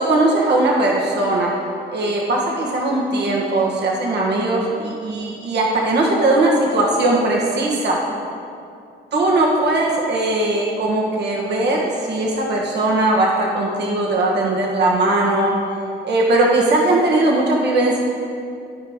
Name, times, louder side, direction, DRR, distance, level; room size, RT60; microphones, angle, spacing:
voice 1, 0.0-1.5 1.9-8.0 9.1-15.5 16.0-18.0, right 2 dB, 60° right, -2 dB, 1.4 m, -19 dB
13.0 x 4.9 x 3.7 m, 2.4 s
cardioid pair, 90°, 20 cm